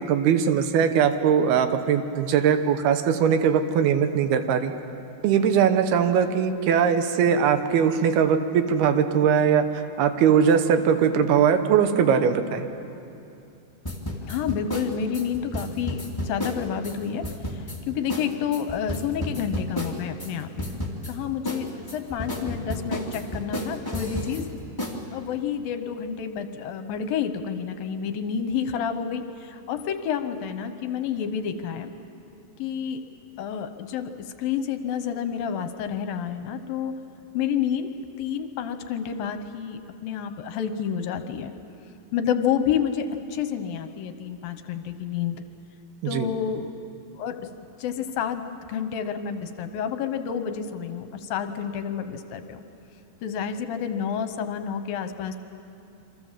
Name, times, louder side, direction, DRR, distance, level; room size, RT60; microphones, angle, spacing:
voice 1, 0.0-4.7 5.2-12.7 46.0-46.3, right 7 dB, 80° right, 8 dB, 3.0 m, -21 dB
sound 1, 13.8-17.0 17.2-17.8 18.1-18.3 18.5-20.3 20.6-21.1 21.4-24.4 24.8-25.0, left 1 dB, 10° left, 1.5 m, -31 dB
voice 2, 14.2-17.2 17.5-20.7 21.1-24.5 25.1-31.9 32.6-33.0 33.4-34.1 34.4-36.9 37.3-37.9 38.2-41.5 42.1-45.4 46.1-47.4 47.8-48.4 48.7-52.6 53.2-55.4, left 8 dB, 70° left, 9 dB, 2.6 m, -29 dB
28.0 x 24.5 x 7.5 m, 2.7 s
omnidirectional pair, 4.5 m